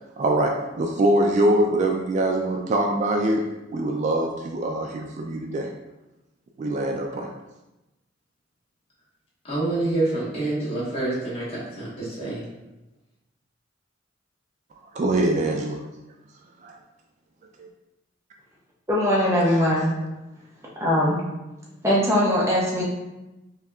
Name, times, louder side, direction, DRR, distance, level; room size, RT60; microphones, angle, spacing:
voice 1, 0.2-3.4 3.7-5.7 6.6-7.3 14.9-15.8 16.6-16.8 17.6-17.7, right 1 dB, 35° right, 2 dB, 0.3 m, -23 dB
voice 2, 9.5-12.4, right 2 dB, 30° left, -7 dB, 1.3 m, -27 dB
voice 3, 18.9-19.9 20.8-21.2 21.8-22.8, left 1 dB, 15° right, -5 dB, 0.7 m, -20 dB
5.6 x 2.7 x 2.3 m, 1.0 s
head